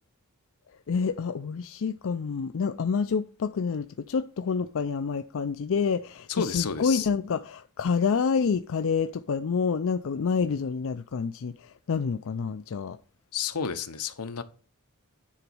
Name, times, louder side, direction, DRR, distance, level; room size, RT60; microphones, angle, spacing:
voice 1, 0.9-13.0, left 5 dB, 60° left, 0.4 m, -28 dB
voice 2, 6.3-7.1 13.3-14.4, left 7 dB, 85° left, 0.9 m, -31 dB
9.9 x 4.0 x 6.1 m
head